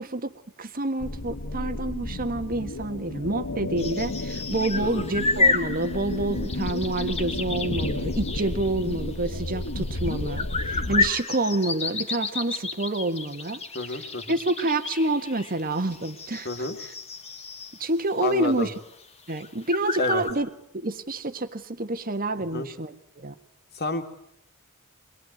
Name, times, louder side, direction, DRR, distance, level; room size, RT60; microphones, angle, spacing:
voice 1, 0.0-13.6 13.9-16.9 17.8-18.7 19.3-20.5 20.7-23.3, right 2 dB, 40° right, 9 dB, 1.6 m, -28 dB
sound 1, 1.0-11.1, left 2 dB, 65° left, 1.2 m, -32 dB
sound 2, 3.8-18.1 18.4-18.5 18.9-19.0 19.3-20.3, left 3 dB, 30° left, 2.1 m, -31 dB
voice 2, 4.8-5.1 13.7-14.4 16.4-16.8 18.2-18.7 20.0-20.2 22.5-22.7 23.8-24.0, left 2 dB, 45° left, 6 dB, 2.8 m, -29 dB
24.5 x 21.5 x 9.6 m, 0.71 s
head